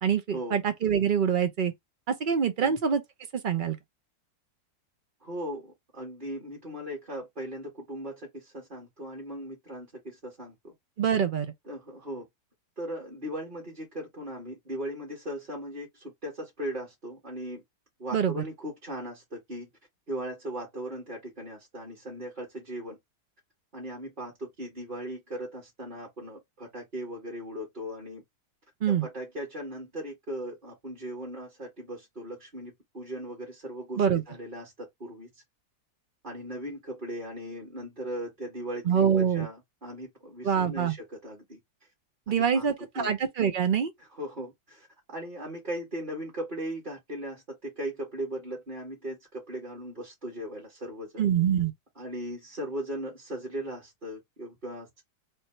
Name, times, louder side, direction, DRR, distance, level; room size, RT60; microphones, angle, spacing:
voice 1, 0.0-1.7 2.1-3.0 3.3-3.8 11.0-11.5 18.1-18.3 28.8-29.1 34.0-34.2 38.9-39.5 40.4-40.9 42.3-43.9 51.2-51.7, right 7 dB, 85° right, 0.4 m, -25 dB
voice 2, 5.2-10.7 11.6-12.3 12.8-17.6 18.0-19.7 20.1-23.0 23.7-28.2 28.9-35.3 36.2-41.6 42.3-43.1 44.0-51.3 52.0-55.0, right 1 dB, 30° right, 1.6 m, -38 dB
3.5 x 2.7 x 4.3 m
omnidirectional pair, 1.8 m